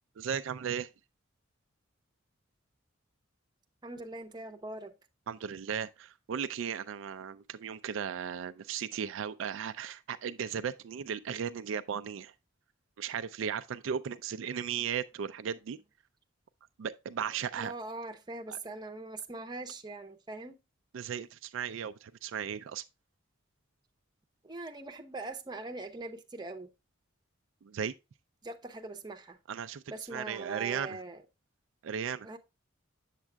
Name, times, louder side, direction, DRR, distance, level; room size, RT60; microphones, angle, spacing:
voice 1, 0.2-0.9 5.3-12.3 13.0-15.8 16.8-17.7 18.5-18.6 20.9-22.8 27.6-27.9 29.5-29.8 30.1-31.0 31.8-32.3, right 7 dB, 70° right, 0.4 m, -36 dB
voice 2, 3.8-5.0 17.5-20.6 24.4-26.7 28.4-29.4 29.9-31.2 32.2-32.4, right 2 dB, 20° right, 0.8 m, -42 dB
7.5 x 7.2 x 2.2 m
head